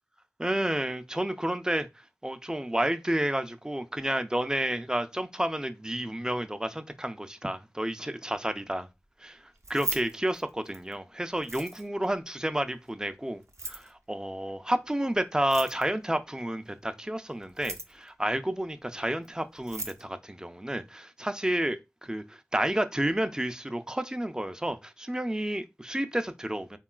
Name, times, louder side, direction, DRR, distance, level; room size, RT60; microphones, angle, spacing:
voice 1, 0.4-1.9 2.2-8.9 9.2-9.4 9.7-13.4 13.7-26.8, right 1 dB, 15° right, 0.3 m, -30 dB
Keys jangling, 9.5-10.9 11.4-12.1 13.4-13.9 15.4-16.1 17.4-18.1 19.2-19.3 19.6-20.0, right 2 dB, 70° right, 0.5 m, -38 dB
3.6 x 2.3 x 2.2 m
wide cardioid pair, 40°, 5 cm